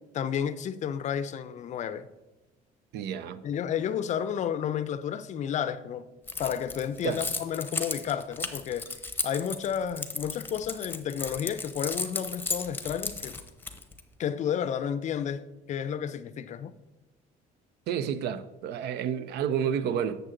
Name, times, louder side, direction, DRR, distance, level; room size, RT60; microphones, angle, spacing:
voice 1, 0.1-2.1 3.4-6.1 6.4-13.4 14.2-15.4 15.7-16.7, left 8 dB, 45° left, 0.5 m, -31 dB
voice 2, 2.9-3.4 7.0-7.2 17.9-20.2, right 8 dB, 75° right, 0.5 m, -30 dB
Keys jangling, 6.3-14.0, left 3 dB, 10° left, 0.7 m, -34 dB
7.8 x 6.5 x 3.8 m
cardioid pair, 110°, 17 cm